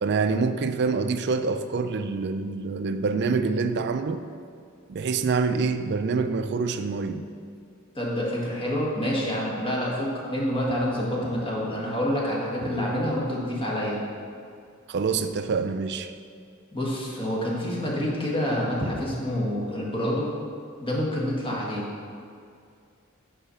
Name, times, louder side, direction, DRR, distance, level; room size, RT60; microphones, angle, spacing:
voice 1, 0.0-4.2 4.9-7.2 14.9-16.1, right 4 dB, 55° right, 9 dB, 0.4 m, -26 dB
voice 2, 7.9-14.0 16.7-20.3 20.8-21.9, equal, 25° left, -4 dB, 1.6 m, -27 dB
9.0 x 4.2 x 5.7 m, 2.4 s
head